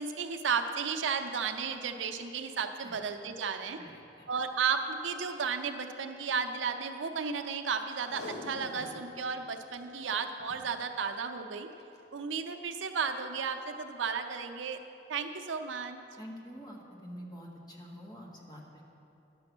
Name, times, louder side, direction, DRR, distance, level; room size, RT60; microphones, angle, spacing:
voice 1, 0.0-3.8 4.3-11.7 12.1-14.8 15.1-16.0, right 5 dB, 80° right, 7 dB, 0.6 m, -33 dB
voice 2, 3.8-4.3 16.2-18.9, equal, 20° left, -1 dB, 1.2 m, -47 dB
Packing tape duct tape, 8.0-9.1 9.5-9.6 9.7-9.8 10.4-10.7 11.7-12.0 12.5-12.6, left 2 dB, 55° left, 1.1 m, -44 dB
10.5 x 6.9 x 6.1 m, 2.8 s
head